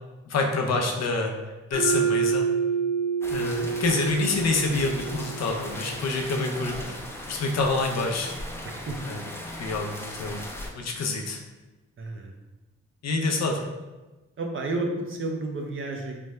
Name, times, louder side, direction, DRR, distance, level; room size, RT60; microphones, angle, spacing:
voice 1, 0.3-2.5 3.3-7.0 7.3-8.3 9.0-9.2 9.6-10.4 10.7-11.4 13.0-13.7, left 3 dB, 65° left, 2 dB, 0.6 m, -27 dB
Mallet percussion, 1.7-5.8, right 6 dB, 90° right, 1.4 m, -27 dB
sound 1, 3.2-10.7, left 1 dB, 10° left, 0.6 m, -38 dB
voice 2, 6.4-6.9 8.6-9.0 12.0-12.4 14.4-16.2, right 2 dB, 45° right, 2 dB, 0.6 m, -32 dB
3.3 x 2.0 x 3.3 m, 1.1 s
supercardioid pair, 60°, 29 cm